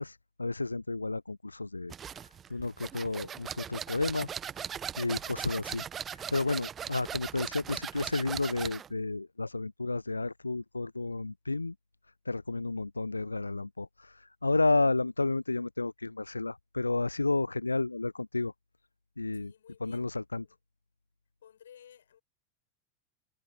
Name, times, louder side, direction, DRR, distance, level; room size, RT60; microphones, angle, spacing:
voice 1, 0.0-1.9 2.5-4.3 5.0-5.8 6.1-11.7 12.3-18.5 19.2-19.5 19.8-20.4, left 3 dB, 80° left, 0.4 m, -31 dB
sound 1, 1.9-8.9, right 8 dB, 25° right, 0.8 m, -39 dB
voice 2, 19.3-20.1 20.4-20.6 21.4-22.2, left 9 dB, 65° left, 5.4 m, -58 dB
figure-of-eight pair, 90°, 0 cm